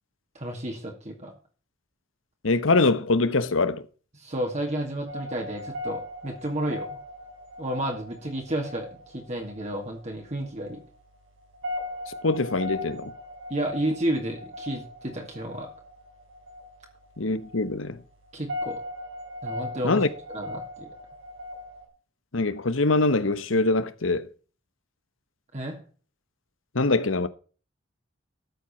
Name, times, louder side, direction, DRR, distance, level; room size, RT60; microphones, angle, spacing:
voice 1, 0.3-1.3 4.1-7.0 7.6-10.8 13.5-15.7 18.3-18.8 19.4-20.0 20.3-20.9 25.5-25.8, right 1 dB, 35° right, 2.4 m, -31 dB
voice 2, 2.4-3.8 12.1-13.1 17.2-18.0 19.8-20.1 22.3-24.3 26.7-27.3, left 3 dB, 80° left, 1.1 m, -23 dB
sound 1, 5.1-21.9, left 1 dB, 75° right, 4.4 m, -39 dB
13.0 x 7.8 x 4.5 m
head